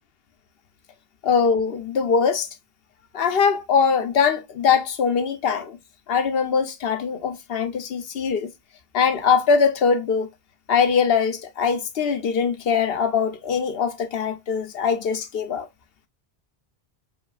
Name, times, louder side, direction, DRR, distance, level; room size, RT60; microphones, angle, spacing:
voice 1, 1.2-2.5 3.1-5.8 6.1-8.5 8.9-10.3 10.7-15.7, left 6 dB, 70° left, 1.0 m, -22 dB
5.1 x 3.0 x 2.4 m
omnidirectional pair, 1.1 m